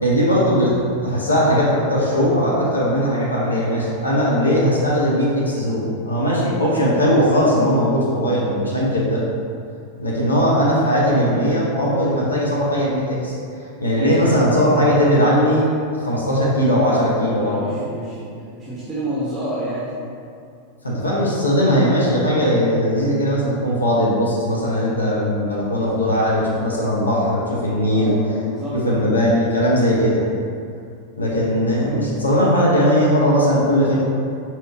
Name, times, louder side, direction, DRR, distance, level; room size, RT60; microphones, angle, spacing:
voice 1, 0.0-9.2 10.0-15.7 16.0-17.8 20.8-28.1 28.8-30.2 31.2-34.0, equal, 80° left, -6 dB, 0.6 m, -19 dB
voice 2, 17.2-18.3 18.5-19.9 27.9-29.1, right 1 dB, 10° right, -9 dB, 0.7 m, -29 dB
4.4 x 2.8 x 2.3 m, 2.4 s
figure-of-eight pair, 90°, 0 cm